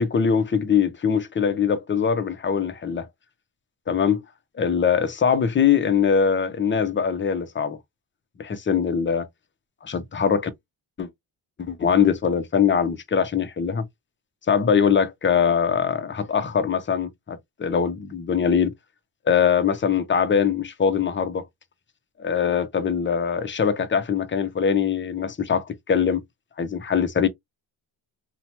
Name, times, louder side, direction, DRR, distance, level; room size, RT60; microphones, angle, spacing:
voice 1, 0.0-3.1 3.9-4.2 4.6-7.8 8.4-9.3 9.8-10.5 11.0-11.1 11.6-13.8 14.5-18.7 19.3-21.5 22.2-26.2 26.6-27.3, left 7 dB, 25° left, 0.6 m, -22 dB
2.8 x 2.2 x 2.8 m
cardioid pair, 70°, 49 cm